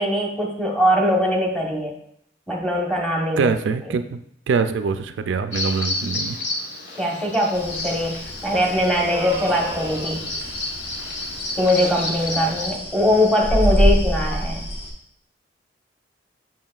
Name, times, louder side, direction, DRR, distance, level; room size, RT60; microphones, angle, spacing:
voice 1, 0.0-1.9 2.5-3.5 3.8-3.9 6.9-10.2 11.6-14.6, left 1 dB, 5° left, -1 dB, 1.0 m, -21 dB
voice 2, 3.4-4.2 4.5-6.4, right 5 dB, 75° right, 9 dB, 0.3 m, -23 dB
Bird vocalization bird call bird song, 5.5-12.7, left 2 dB, 80° left, 1.1 m, -31 dB
sound 1, 7.5-14.9, equal, 35° left, 1.0 m, -26 dB
sound 2, 9.0-10.4, right 3 dB, 20° right, 0.5 m, -33 dB
7.2 x 5.7 x 2.3 m, 0.70 s
head